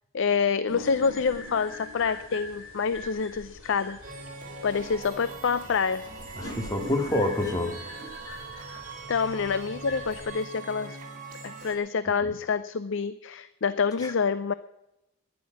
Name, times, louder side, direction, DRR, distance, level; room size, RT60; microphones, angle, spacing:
voice 1, 0.1-4.0 4.6-6.0 9.1-11.0 11.4-14.5, left 5 dB, 60° left, 14 dB, 0.5 m, -27 dB
sound 1, 0.7-10.3, left 2 dB, 80° left, 6.9 m, -43 dB
sound 2, 4.0-11.7, right 3 dB, 40° right, 4.1 m, -42 dB
voice 2, 6.4-7.8 12.2-12.3 14.0-14.1, left 1 dB, 20° left, 4 dB, 2.1 m, -27 dB
11.5 x 10.5 x 9.4 m, 0.90 s
head